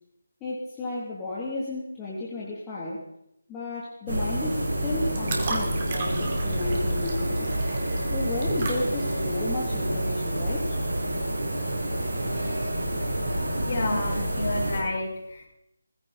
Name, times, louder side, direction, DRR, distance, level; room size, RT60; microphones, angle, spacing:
voice 1, 0.4-3.0 3.5-7.5 8.1-10.8, left 2 dB, 15° left, -6 dB, 2.8 m, -33 dB
sound 1, 4.1-14.8, right 1 dB, 55° right, 6.4 m, -28 dB
sound 2, 5.2-11.4, right 3 dB, 35° right, 3.2 m, -37 dB
voice 2, 13.6-15.5, left 2 dB, 40° left, 0 dB, 5.3 m, -30 dB
19.5 x 16.0 x 4.1 m, 0.79 s
figure-of-eight pair, 155°, 0 cm